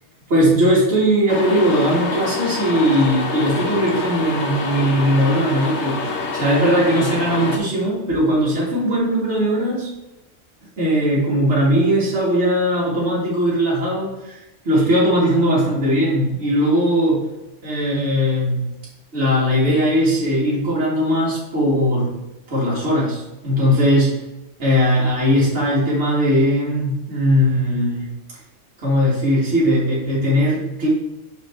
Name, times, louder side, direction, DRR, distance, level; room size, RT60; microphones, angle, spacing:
voice 1, 0.3-9.9 10.8-17.2 17.6-18.6 19.1-22.1 22.5-24.1 24.6-28.1 28.8-30.9, equal, 60° right, -6 dB, 1.9 m, -19 dB
sound 1, 1.3-7.6, left 3 dB, 65° left, 1.1 m, -26 dB
5.8 x 4.4 x 4.1 m, 0.97 s
omnidirectional pair, 1.3 m